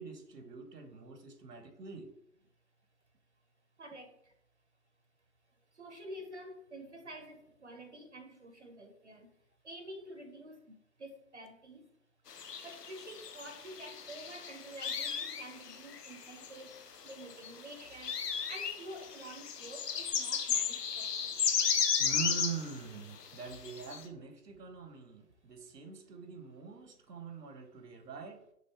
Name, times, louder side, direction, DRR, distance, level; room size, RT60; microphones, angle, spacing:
voice 1, 0.0-2.1 22.0-28.4, right 6 dB, 85° right, 7 dB, 1.0 m, -43 dB
voice 2, 5.8-9.3 9.6-10.6 11.0-11.9 12.6-16.8 17.0-18.2 18.5-21.5 22.3-22.5, right 1 dB, 50° right, 6 dB, 0.5 m, -48 dB
sound 1, 12.3-16.7 17.1-22.7 23.3-24.0, left 7 dB, 80° left, 0.8 m, -34 dB
5.4 x 3.0 x 2.8 m, 0.72 s
hypercardioid pair, 170°, 47 cm